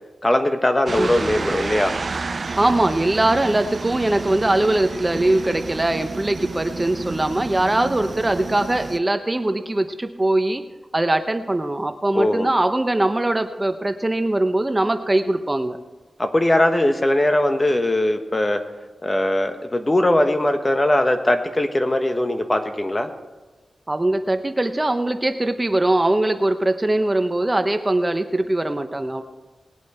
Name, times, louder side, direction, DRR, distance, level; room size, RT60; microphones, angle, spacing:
voice 1, 0.2-1.9 12.1-12.5 16.2-18.6 19.0-23.1, left 1 dB, 25° left, 7 dB, 1.3 m, -20 dB
sound 1, 0.9-9.0, right 4 dB, 50° right, 0.4 m, -31 dB
voice 2, 2.6-10.6 10.9-15.8 23.9-29.2, right 1 dB, 25° right, 8 dB, 0.8 m, -21 dB
20.0 x 8.3 x 4.4 m, 1.2 s
cardioid pair, 60°, 0 cm